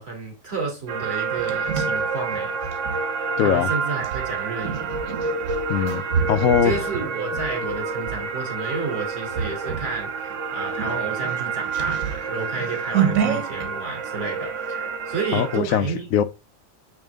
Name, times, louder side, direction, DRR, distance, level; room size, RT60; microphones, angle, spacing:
voice 1, 0.0-2.6 3.4-5.0 6.6-16.1, right 4 dB, 50° right, 3.3 m, -31 dB
sound 1, 0.9-15.6, right 4 dB, 70° right, 1.2 m, -29 dB
sound 2, 1.0-3.0 4.0-8.2 8.7-8.9 9.3-10.0 10.3-10.4 10.7-13.7, right 7 dB, 90° right, 1.4 m, -28 dB
voice 2, 3.4-3.7 5.7-6.7 15.3-16.2, left 9 dB, 85° left, 1.1 m, -21 dB
8.8 x 3.2 x 3.5 m
omnidirectional pair, 1.4 m